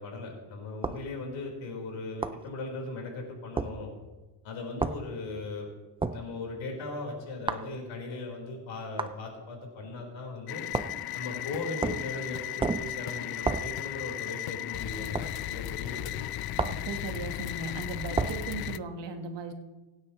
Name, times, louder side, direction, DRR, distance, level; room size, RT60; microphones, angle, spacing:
voice 1, 0.0-3.9 4.4-5.7 6.1-10.6 11.1-16.2, left 3 dB, 80° left, 0 dB, 4.4 m, -38 dB
sound 1, 0.8-1.1 2.2-2.4 3.6-3.7 4.8-5.0 6.0-6.2 7.5-7.7 9.0-9.2 10.7-11.0 11.8-12.1 12.6-12.9 13.5-13.7 15.2-15.3 16.6-16.9 18.2-18.4, right 4 dB, 15° right, 0.4 m, -30 dB
sound 2, 10.5-18.8, left 13 dB, 55° left, 0.5 m, -36 dB
voice 2, 16.6-19.5, right 4 dB, 65° right, 5 dB, 1.6 m, -37 dB
24.5 x 9.6 x 3.1 m, 1.2 s
cardioid pair, 140°, 45 cm